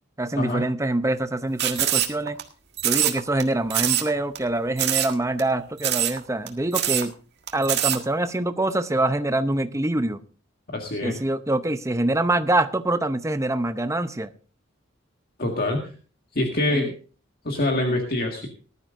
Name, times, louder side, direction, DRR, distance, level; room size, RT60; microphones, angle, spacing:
voice 1, 0.2-2.4 2.8-7.1 7.5-10.2 11.0-14.3 16.7-16.9, right 2 dB, 15° right, 0.7 m, -25 dB
sound 1, 1.6-2.4 2.8-3.4 3.7-4.1 4.3-4.4 4.8-5.1 5.4-5.5 5.8-6.2 6.5-6.6 6.7-7.1 7.5-8.0, right 11 dB, 55° right, 1.6 m, -23 dB
voice 2, 10.7-11.2 15.4-15.9 16.4-16.9 17.4-18.5, left 1 dB, 50° left, 1.9 m, -25 dB
19.5 x 12.5 x 2.6 m
head